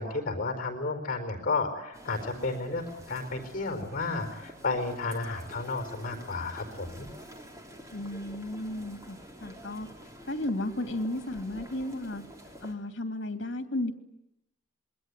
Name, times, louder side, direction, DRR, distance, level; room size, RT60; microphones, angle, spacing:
voice 1, 0.0-7.1, left 3 dB, 45° left, 7 dB, 4.6 m, -32 dB
sound 1, 1.9-12.7, equal, 15° right, 3.5 m, -48 dB
voice 2, 7.9-9.9 10.3-12.2 12.6-13.9, left 1 dB, 65° left, 6 dB, 2.6 m, -34 dB
27.0 x 22.0 x 9.8 m, 0.83 s
head